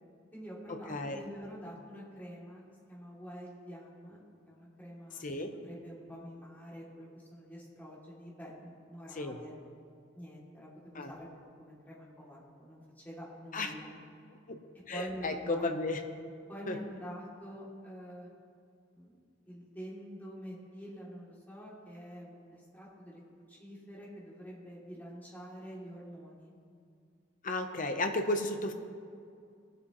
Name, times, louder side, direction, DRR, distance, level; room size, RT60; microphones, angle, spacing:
voice 1, 0.3-2.6 2.9-5.3 5.5-9.5 10.1-11.3 11.6-13.9 14.9-15.7 16.5-18.3 18.9-19.2 19.4-26.5, equal, 10° left, -6 dB, 2.7 m, -47 dB
voice 2, 0.9-1.2 5.2-5.5 9.2-9.4 10.9-11.1 13.5-13.7 14.5-14.6 14.9-16.0 16.7-16.8 27.4-28.7, left 2 dB, 45° left, 6 dB, 0.8 m, -33 dB
19.5 x 7.8 x 3.1 m, 2.4 s
head